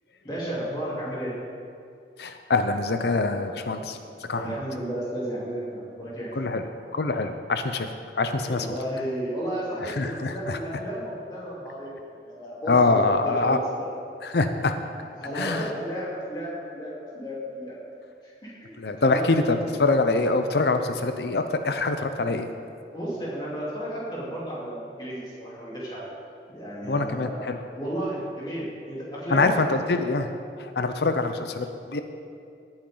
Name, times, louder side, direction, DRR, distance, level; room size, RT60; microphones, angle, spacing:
voice 1, 0.2-1.3 3.7-3.9 4.3-6.3 8.4-13.9 15.2-17.8 18.2-19.5 22.9-26.1 26.5-30.0, equal, 25° left, -7 dB, 3.4 m, -33 dB
voice 2, 2.2-4.6 6.4-6.6 6.9-7.9 8.1-8.7 9.8-10.6 12.7-13.6 14.2-14.7 15.3-15.6 18.8-22.5 26.9-27.6 29.3-30.3 30.6-32.0, left 3 dB, 70° left, 7 dB, 0.6 m, -24 dB
18.0 x 8.9 x 3.9 m, 2.4 s
head